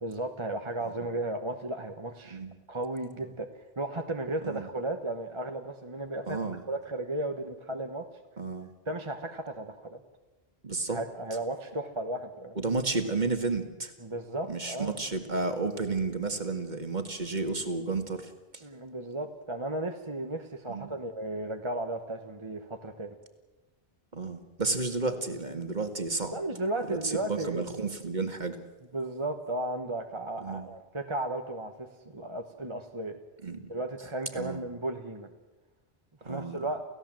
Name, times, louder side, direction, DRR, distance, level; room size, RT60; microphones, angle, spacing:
voice 1, 0.0-2.4 2.7-3.5 3.8-6.4 6.7-8.1 8.9-10.0 10.9-12.6 14.0-15.1 18.6-23.1 26.3-27.7 28.9-33.2 33.7-35.3 36.2-36.8, right 2 dB, 30° right, 5 dB, 1.2 m, -35 dB
voice 2, 6.3-6.6 8.4-8.7 10.6-11.0 12.6-13.9 14.5-18.6 20.7-20.9 24.1-26.4 26.9-28.6 30.4-30.7 33.4-33.7 34.3-34.6 36.2-36.6, right 3 dB, 45° right, 7 dB, 2.0 m, -32 dB
29.0 x 16.0 x 7.7 m, 1.1 s
omnidirectional pair, 1.1 m